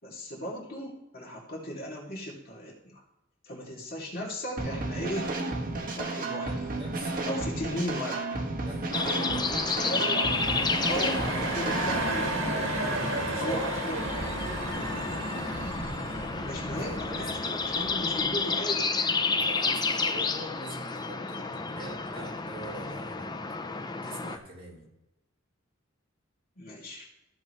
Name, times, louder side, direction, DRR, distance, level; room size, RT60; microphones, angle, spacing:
voice 1, 0.0-3.0 3.4-5.3 6.0-6.5 7.2-8.4 9.4-10.4 10.9-12.5 13.4-14.0 16.4-18.9 26.6-27.1, equal, 50° left, -3 dB, 2.8 m, -36 dB
sound 1, 4.6-12.1, right 2 dB, 45° right, 1.5 m, -32 dB
voice 2, 6.2-7.3 8.6-12.0 12.7-13.6 16.7-18.3 19.4-23.3 24.0-24.9, right 1 dB, 30° right, -6 dB, 4.0 m, -43 dB
sound 2, 8.9-24.4, left 4 dB, 20° left, 0.6 m, -31 dB
sound 3, 9.8-18.5, right 2 dB, 80° right, 1.6 m, -33 dB
15.0 x 7.1 x 3.3 m, 0.92 s
head